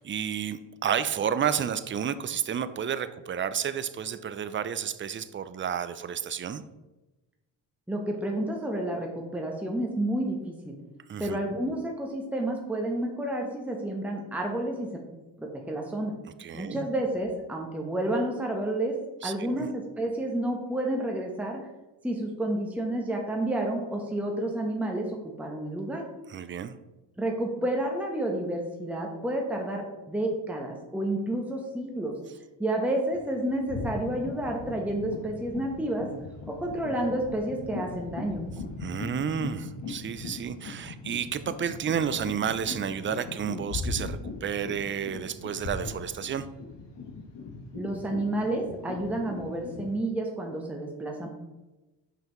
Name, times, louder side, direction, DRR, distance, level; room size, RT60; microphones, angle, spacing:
voice 1, 0.0-6.6 11.1-11.4 16.4-16.9 19.2-19.7 26.3-26.7 38.8-46.5, right 8 dB, 25° right, 13 dB, 0.4 m, -31 dB
voice 2, 7.9-10.8 11.2-14.9 15.4-16.2 16.5-19.0 19.2-21.6 22.0-26.1 27.2-32.1 32.6-36.1 36.5-38.5 47.7-51.3, right 1 dB, 5° right, 0 dB, 1.0 m, -30 dB
sound 1, 32.8-33.2 33.5-49.9, left 4 dB, 60° left, 1.2 m, -39 dB
5.5 x 5.5 x 3.0 m, 1.1 s
supercardioid pair, 65°, 46 cm